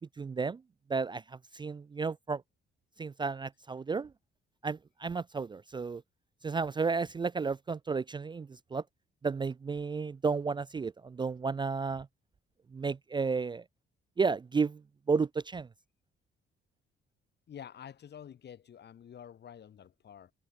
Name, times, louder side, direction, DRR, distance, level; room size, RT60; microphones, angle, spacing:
voice 1, 0.2-0.6 0.9-2.4 3.0-4.1 4.6-6.0 6.4-8.8 9.2-12.1 12.7-13.6 14.2-14.8 15.1-15.7, right 4 dB, 25° right, 0.4 m, -32 dB
voice 2, 17.5-20.3, left 9 dB, 60° left, 3.4 m, -49 dB
cardioid pair, 90°, 20 cm